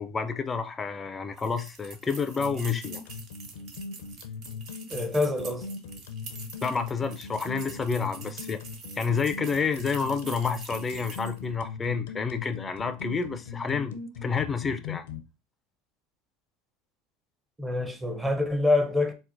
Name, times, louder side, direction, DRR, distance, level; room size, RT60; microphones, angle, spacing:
voice 1, 0.0-3.0 6.6-8.6 9.0-15.0, left 5 dB, 20° left, 0.4 m, -29 dB
sound 1, 1.4-11.4, right 4 dB, 55° right, 0.8 m, -45 dB
sound 2, 2.4-15.2, left 5 dB, 80° left, 0.5 m, -39 dB
voice 2, 4.9-5.7 17.6-19.1, left 2 dB, 10° right, 0.6 m, -26 dB
4.2 x 2.1 x 2.5 m
hypercardioid pair, 95°, 0 cm